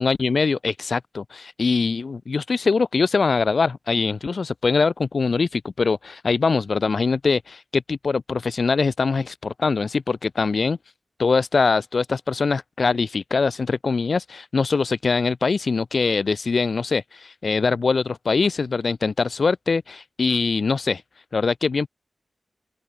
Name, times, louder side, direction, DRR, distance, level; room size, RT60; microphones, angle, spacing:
voice 1, 0.0-10.8 11.2-21.0 21.3-21.9, left 4 dB, 50° left, 5.5 m, -22 dB
open air
wide cardioid pair, 135°, 0 cm